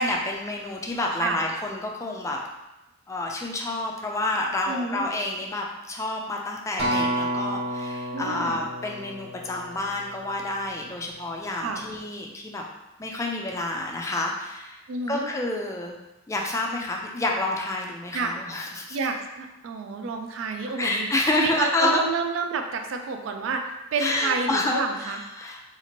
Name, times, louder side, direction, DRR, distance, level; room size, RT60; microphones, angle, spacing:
voice 1, 0.0-2.4 3.1-12.6 13.0-14.8 15.1-16.0 16.3-19.0 20.8-22.0 24.0-25.7, left 2 dB, 15° left, 0 dB, 0.3 m, -28 dB
voice 2, 4.7-5.1 8.1-8.6 11.6-11.8 14.9-15.3 18.1-18.3 18.9-21.1 21.4-25.2, right 4 dB, 80° right, 5 dB, 0.3 m, -29 dB
Acoustic guitar, 6.8-11.2 11.8-12.0, right 1 dB, 60° right, 1.0 m, -31 dB
2.8 x 2.5 x 2.9 m, 0.97 s
head